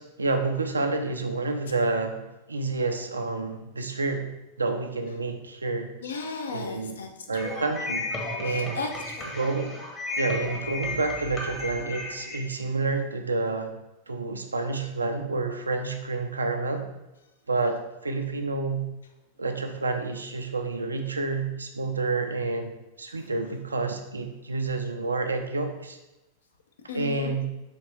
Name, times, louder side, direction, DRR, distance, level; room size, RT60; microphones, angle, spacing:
voice 1, 0.0-4.3 4.6-5.9 6.5-7.0 7.3-8.1 8.4-8.8 9.3-9.7 10.2-13.7 14.1-16.8 17.5-18.9 19.4-26.0 26.9-27.4, right 3 dB, 75° right, 5 dB, 0.4 m, -29 dB
voice 2, 6.0-7.6 8.5-9.3 26.9-27.5, left 4 dB, 70° left, 3 dB, 0.5 m, -36 dB
sound 1, 7.3-12.4, left 2 dB, 20° left, 0.8 m, -34 dB
4.2 x 2.9 x 3.1 m, 0.98 s
figure-of-eight pair, 90°, 0 cm